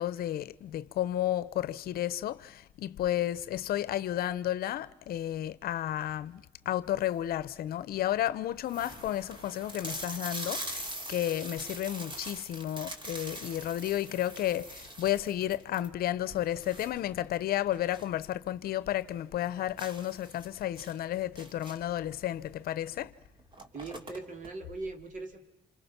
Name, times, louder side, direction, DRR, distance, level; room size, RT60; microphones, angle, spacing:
voice 1, 0.0-23.1, left 12 dB, 65° left, 0.8 m, -32 dB
sound 1, 7.0-7.3 7.9-8.0 8.2-8.3 8.6-18.2 18.5-18.6 19.0-19.1 19.8-22.0 23.0-23.1 23.4-24.5, right 1 dB, 30° right, 2.9 m, -43 dB
voice 2, 23.7-25.4, right 3 dB, 50° right, 3.5 m, -40 dB
28.5 x 27.5 x 6.0 m
cardioid pair, 110°, 17 cm